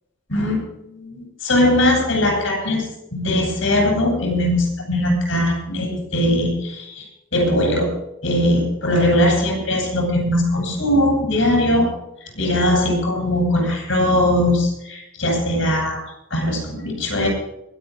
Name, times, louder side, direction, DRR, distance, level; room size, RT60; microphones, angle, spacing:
voice 1, 0.3-2.8 3.1-7.0 7.3-7.9 8.2-11.9 12.3-16.0 16.3-17.3, left 1 dB, 70° left, 0 dB, 7.8 m, -20 dB
23.5 x 9.1 x 5.2 m, 0.86 s
head